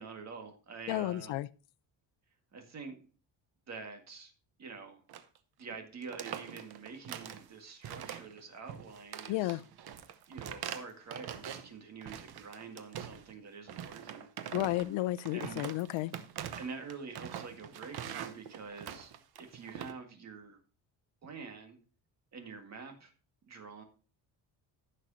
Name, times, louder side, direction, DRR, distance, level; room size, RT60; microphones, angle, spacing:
voice 1, 0.0-1.4 2.5-3.1 3.7-4.3 4.6-5.0 5.6-9.6 10.3-14.6 15.3-15.7 16.5-19.1 19.4-20.6 21.2-21.8 22.3-23.1 23.5-23.8, right 5 dB, 35° right, 1.9 m, -46 dB
voice 2, 0.9-1.5 9.3-9.6 14.5-16.1, left 16 dB, 85° left, 0.6 m, -32 dB
sound 1, 5.1-5.4 5.6-5.8 6.0-7.5 7.8-8.4 8.7-11.7 12.0-13.3 13.7-19.9, right 9 dB, 55° right, 1.0 m, -43 dB
15.0 x 6.5 x 2.7 m
cardioid pair, 170°, 45 cm